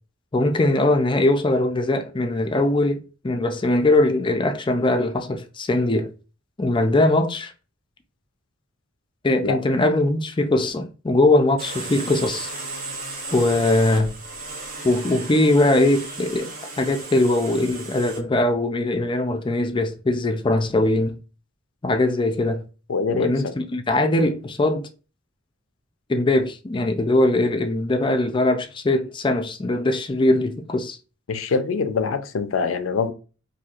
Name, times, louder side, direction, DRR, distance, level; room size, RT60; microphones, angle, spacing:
voice 1, 0.3-6.1 6.6-7.5 9.2-12.5 13.3-14.1 14.8-16.5 16.8-21.2 21.8-22.6 23.1-24.9 26.1-31.0, left 2 dB, 25° left, 0.4 m, -21 dB
sound 1, 11.6-18.2, right 3 dB, 45° right, 0.9 m, -35 dB
voice 2, 22.9-23.5 31.3-33.1, left 5 dB, 75° left, 0.5 m, -24 dB
4.3 x 2.7 x 2.4 m
head